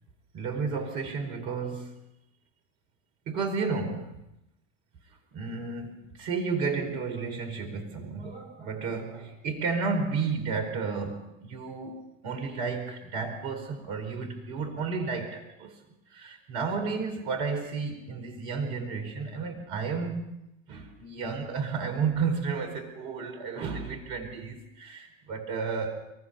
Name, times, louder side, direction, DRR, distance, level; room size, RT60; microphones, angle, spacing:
voice 1, 0.3-1.9 3.3-4.2 5.3-15.8 16.1-20.2 20.7-26.1, right 5 dB, 55° right, 6 dB, 4.6 m, -32 dB
23.0 x 23.0 x 5.5 m, 0.88 s
figure-of-eight pair, 80°, 40 cm